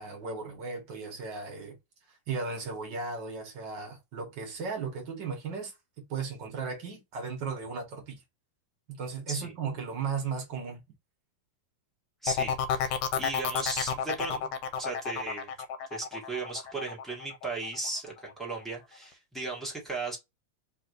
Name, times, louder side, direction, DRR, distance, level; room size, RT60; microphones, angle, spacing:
voice 1, 0.0-1.8 2.3-8.2 8.9-10.8, right 5 dB, 50° right, 1.5 m, -36 dB
voice 2, 12.2-15.5 15.9-20.2, right 3 dB, ahead, 0.6 m, -36 dB
sound 1, 12.3-17.9 18.3-18.7, left 7 dB, 80° left, 2.2 m, -31 dB
4.8 x 3.2 x 2.6 m
omnidirectional pair, 3.6 m